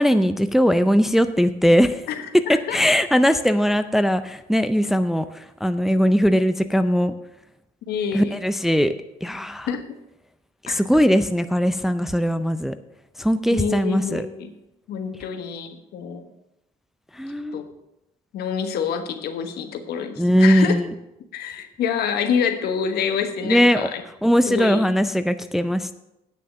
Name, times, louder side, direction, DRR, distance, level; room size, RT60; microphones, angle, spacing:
voice 1, 0.0-2.0 2.5-7.1 8.1-8.9 9.2-9.7 10.6-12.7 13.2-14.3 17.2-17.6 20.2-20.9 23.4-23.9 24.2-25.9, equal, ahead, 10 dB, 0.4 m, -20 dB
voice 2, 2.1-2.8 7.9-8.4 9.7-9.8 10.7-10.8 13.5-14.5 14.9-16.3 17.5-17.7 18.3-20.8 21.3-24.0 24.4-24.8, left 7 dB, 70° left, 7 dB, 1.2 m, -27 dB
9.1 x 6.5 x 6.7 m, 0.90 s
cardioid pair, 110°, 17 cm